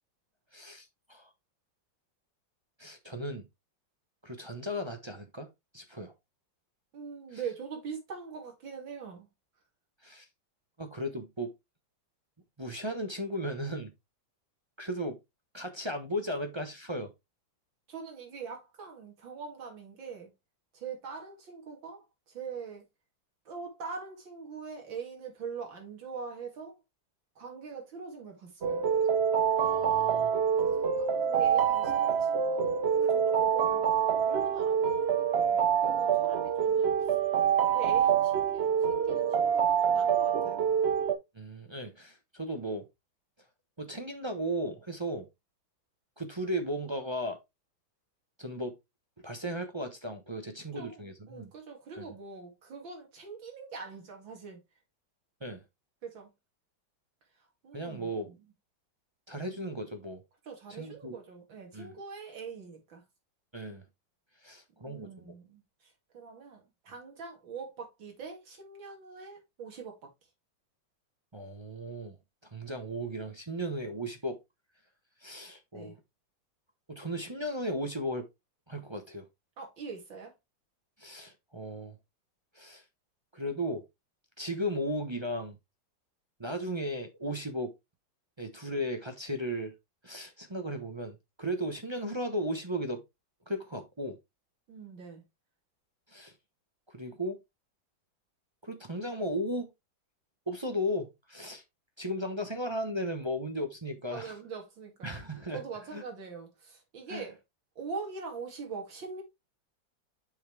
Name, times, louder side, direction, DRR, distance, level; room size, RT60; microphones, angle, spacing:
voice 1, 0.5-1.3 2.8-3.4 4.2-5.5 5.7-6.1 10.0-10.3 10.8-11.5 12.6-13.9 14.8-15.2 15.5-17.1 29.5-30.3 41.3-42.8 43.8-45.3 46.2-47.4 48.4-48.7 49.2-51.5 52.0-52.1 55.4-55.6 57.7-58.3 59.3-60.2 60.8-61.2 61.7-61.9 63.5-63.8 64.4-65.3 71.3-72.2 72.5-74.4 75.2-75.9 76.9-78.3 78.7-79.3 81.0-81.9 82.5-82.8 83.3-83.8 84.4-85.6 86.4-87.7 88.4-89.7 90.0-93.0 93.5-94.2 96.1-96.3 96.9-97.4 98.6-99.7 100.5-101.6 102.0-104.3 105.0-105.6 105.9-106.0 107.1-107.2, equal, 25° right, 0.6 m, -35 dB
voice 2, 6.9-9.3 17.9-20.3 20.7-22.8 23.4-26.8 27.4-28.8 30.6-37.1 37.7-40.6 50.7-54.6 56.0-56.3 57.4-58.4 60.4-63.0 64.8-70.1 75.7-76.0 79.6-80.3 94.7-95.2 104.1-105.2 105.5-107.4 107.8-109.2, right 5 dB, 70° right, 3.1 m, -43 dB
sound 1, 28.6-41.1, right 7 dB, 90° right, 0.5 m, -26 dB
7.0 x 5.6 x 3.3 m
omnidirectional pair, 2.1 m